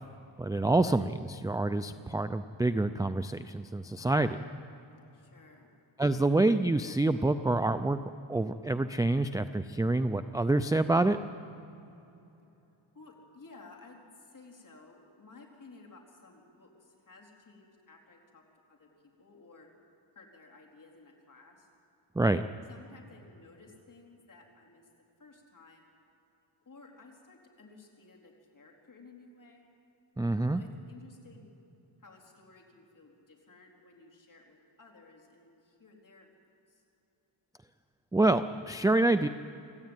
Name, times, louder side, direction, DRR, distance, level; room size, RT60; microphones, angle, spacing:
voice 1, 0.4-4.4 6.0-8.0 8.3-11.2 22.1-22.4 30.2-30.6 38.1-39.3, right 2 dB, 10° right, 10 dB, 0.4 m, -27 dB
voice 2, 5.1-5.7 12.9-18.4 18.7-18.9 19.2-19.7 20.1-21.7 22.7-24.9 25.2-25.9 26.6-29.7 30.3-31.5 32.0-36.3 36.7-36.8, left 3 dB, 40° left, 0 dB, 4.2 m, -55 dB
26.0 x 14.0 x 9.1 m, 2.9 s
wide cardioid pair, 115°, 48 cm